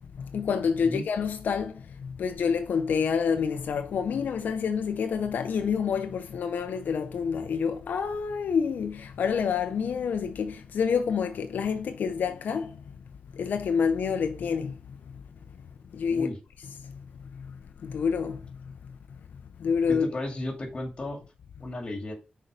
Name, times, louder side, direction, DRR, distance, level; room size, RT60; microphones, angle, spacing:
voice 1, 0.2-12.8 13.3-14.8 15.9-16.3 16.8-16.9 17.3-17.5 17.8-18.4 19.6-20.1, left 6 dB, 90° left, 0.6 m, -28 dB
voice 2, 19.9-21.2 21.6-22.2, left 1 dB, 35° left, 2.2 m, -34 dB
6.5 x 4.6 x 5.0 m
wide cardioid pair, 135°, 3 cm